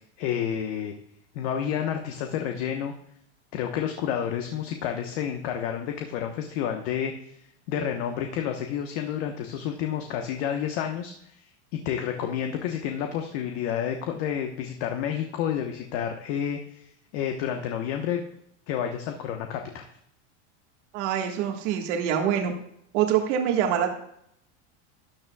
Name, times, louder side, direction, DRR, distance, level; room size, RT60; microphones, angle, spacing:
voice 1, 0.2-0.9 1.3-2.9 3.5-7.4 7.7-11.3 11.7-16.8 17.1-18.3 18.7-19.9, left 9 dB, 65° left, 4 dB, 1.2 m, -30 dB
voice 2, 20.9-22.5 22.9-23.9, right 9 dB, 70° right, 3 dB, 1.7 m, -25 dB
13.0 x 9.7 x 2.3 m, 0.73 s
supercardioid pair, 120°, 37 cm